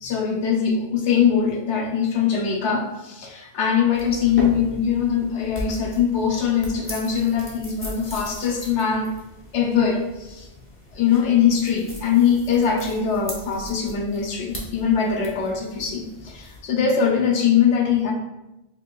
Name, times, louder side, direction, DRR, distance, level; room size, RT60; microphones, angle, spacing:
voice 1, 0.0-9.1 9.5-10.5 10.9-18.1, left 7 dB, 80° left, 2 dB, 0.9 m, -22 dB
sound 1, 3.9-16.6, left 1 dB, 15° left, 0.6 m, -38 dB
4.5 x 2.8 x 2.2 m, 0.96 s
omnidirectional pair, 1.2 m